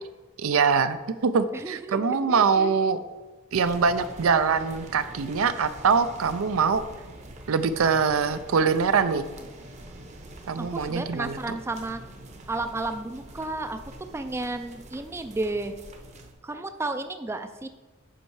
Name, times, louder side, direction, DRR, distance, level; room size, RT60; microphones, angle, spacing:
voice 1, 0.4-1.0 1.2-3.0 3.5-6.8 7.5-9.2 10.5-11.5, right 5 dB, 80° right, 12 dB, 0.5 m, -23 dB
voice 2, 1.5-2.7 10.6-12.0 12.5-13.8 14.1-15.7 16.4-17.7, right 2 dB, 10° right, 8 dB, 0.3 m, -32 dB
sound 1, 3.5-16.3, right 1 dB, 35° right, 0.8 m, -45 dB
8.0 x 5.5 x 4.7 m, 1.2 s
head